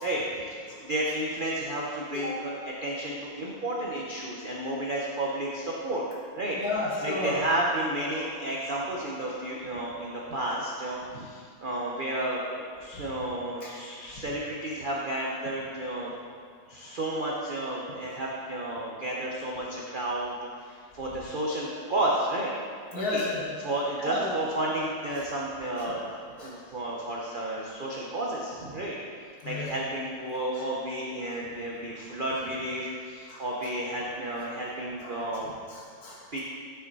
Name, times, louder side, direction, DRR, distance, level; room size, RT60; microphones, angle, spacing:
voice 1, 0.0-2.5 2.8-6.0 6.3-6.6 7.0-16.1 16.7-22.5 22.9-23.3 23.6-26.0 26.3-29.0 29.4-35.5 36.3-36.4, right 1 dB, 60° right, -3 dB, 0.5 m, -32 dB
voice 2, 6.6-7.4 12.9-13.1 13.6-13.7 22.9-23.4 24.0-24.4 26.4-26.5 29.4-29.7 33.3-33.4 35.0-35.3 35.7-36.4, left 2 dB, 55° left, -5 dB, 2.0 m, -32 dB
8.7 x 6.1 x 4.0 m, 2.1 s
omnidirectional pair, 2.0 m